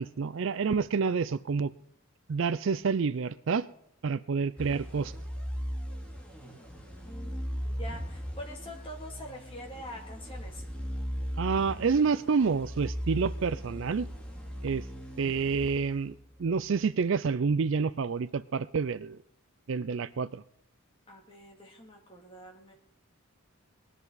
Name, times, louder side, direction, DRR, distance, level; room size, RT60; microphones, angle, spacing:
voice 1, 0.0-1.7 2.3-3.7 4.0-5.1 11.4-14.1 14.6-14.8 15.2-19.2 19.7-20.4, right 5 dB, 55° right, 0.4 m, -28 dB
sound 1, 4.6-16.4, equal, 5° left, 2.4 m, -38 dB
voice 2, 7.0-10.6 21.1-22.7, equal, 25° left, 2.4 m, -45 dB
20.0 x 11.0 x 4.0 m
head